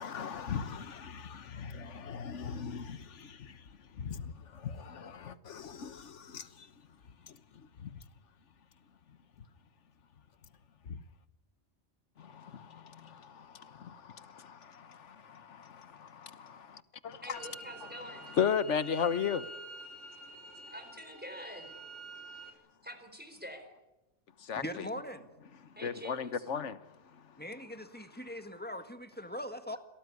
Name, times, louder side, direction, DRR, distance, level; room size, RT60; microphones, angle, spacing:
voice 1, 0.0-3.6 4.0-6.7 7.3-8.0 10.9-11.0 12.2-17.4 18.4-19.5 24.4-24.8 25.8-26.8, left 7 dB, 75° left, 1.5 m, -37 dB
voice 2, 17.2-18.4 20.7-21.7 22.3-23.7 25.8-26.5, equal, 10° right, 4.1 m, -47 dB
sound 1, 17.3-22.5, right 1 dB, 75° right, 4.3 m, -48 dB
voice 3, 24.6-25.3 27.4-29.8, equal, 10° left, 1.8 m, -41 dB
27.0 x 18.0 x 9.7 m
omnidirectional pair, 1.2 m